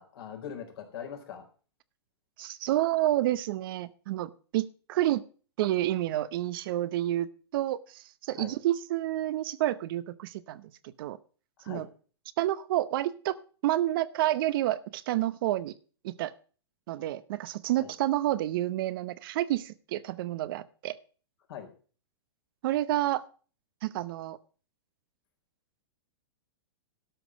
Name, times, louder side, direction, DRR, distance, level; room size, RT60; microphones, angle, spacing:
voice 1, 0.0-1.4 8.4-8.6 11.6-11.9 17.8-17.9 21.5-21.7, left 8 dB, 65° left, 4 dB, 4.1 m, -41 dB
voice 2, 2.4-5.2 5.6-10.6 11.0-11.2 11.7-11.9 12.4-13.4 13.6-15.7 16.0-16.3 16.9-21.0 22.6-23.2 23.8-24.4, right 14 dB, 55° right, 16 dB, 0.8 m, -29 dB
12.5 x 6.0 x 7.2 m, 0.39 s
hypercardioid pair, 125°, 14 cm